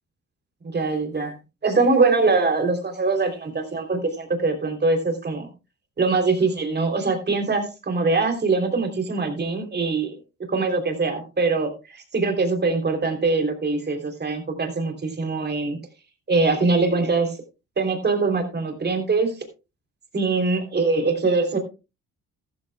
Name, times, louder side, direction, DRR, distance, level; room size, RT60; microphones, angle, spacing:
voice 1, 0.6-1.3 1.6-5.5 6.0-10.2 10.5-15.8 16.3-17.4 17.8-19.3 20.1-21.6, right 3 dB, 35° right, 5 dB, 3.3 m, -23 dB
14.0 x 13.5 x 2.3 m, 0.29 s
cardioid pair, 90°, 30 cm